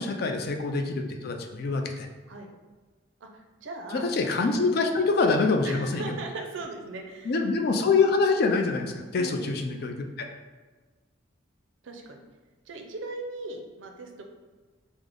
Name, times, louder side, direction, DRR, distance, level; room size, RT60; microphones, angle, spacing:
voice 1, 0.0-2.1 3.9-6.0 7.3-10.3, left 4 dB, 50° left, 4 dB, 0.3 m, -25 dB
voice 2, 3.2-4.1 5.6-7.4 9.2-9.5 11.8-12.2 12.7-14.2, right 2 dB, 65° right, 3 dB, 0.4 m, -38 dB
3.4 x 2.0 x 3.6 m, 1.3 s
head